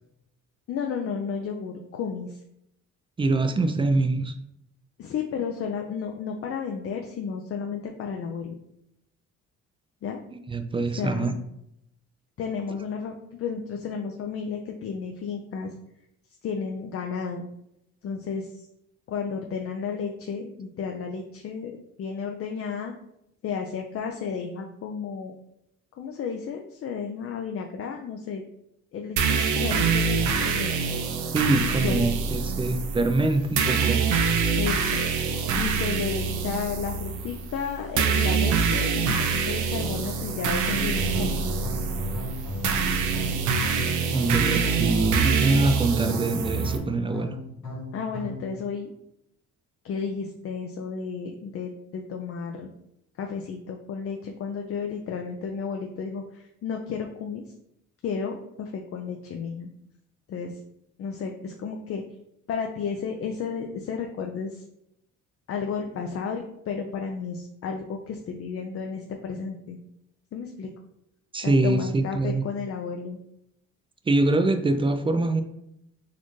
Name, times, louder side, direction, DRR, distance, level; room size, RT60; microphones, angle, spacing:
voice 1, 0.7-2.4 5.0-8.6 10.0-10.2 11.0-11.4 12.4-15.7 16.4-17.5 18.0-18.7 19.1-22.9 23.4-25.3 26.0-28.4 28.9-30.9 31.8-32.4 34.6-35.0 35.5-39.2 39.5-41.6 47.9-48.9 49.8-52.7 53.2-57.5 58.0-59.7 60.3-60.6 61.0-62.0 62.5-64.6 65.5-69.8 70.3-70.7 71.4-73.2, left 6 dB, 50° left, 3 dB, 0.4 m, -32 dB
voice 2, 3.2-4.3 10.5-11.3 31.3-34.0 44.1-47.4 71.3-72.4 74.1-75.4, right 2 dB, 20° right, 8 dB, 0.3 m, -24 dB
sound 1, 29.2-46.8, right 5 dB, 85° right, 0.6 m, -25 dB
sound 2, 40.6-48.5, left 1 dB, 90° left, 1.3 m, -35 dB
4.2 x 2.5 x 3.1 m, 0.79 s
cardioid pair, 90°, 30 cm